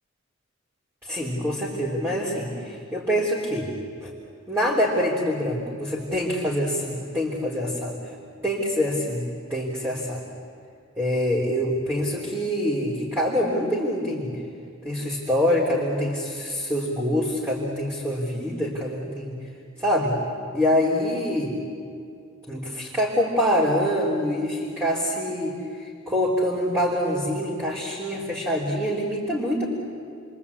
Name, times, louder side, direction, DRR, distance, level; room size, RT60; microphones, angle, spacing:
voice 1, 1.0-3.7 4.0-4.1 4.5-8.0 8.4-9.2 9.5-10.2 11.0-14.4 14.8-19.4 19.8-20.1 20.5-21.6 22.5-25.6 25.8-29.7, equal, 10° right, -4 dB, 3.5 m, -25 dB
30.0 x 23.0 x 8.4 m, 2.3 s
head